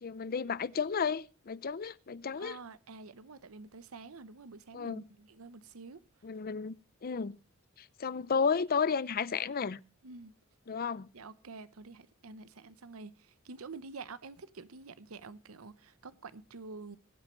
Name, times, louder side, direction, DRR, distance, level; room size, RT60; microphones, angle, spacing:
voice 1, 0.0-2.6 4.7-5.0 6.2-6.7 7.0-7.4 8.0-9.8 10.7-11.1, left 6 dB, 45° left, 0.5 m, -32 dB
voice 2, 2.4-6.0 10.0-10.3 11.1-17.0, right 4 dB, 85° right, 0.8 m, -48 dB
22.0 x 8.5 x 3.0 m
head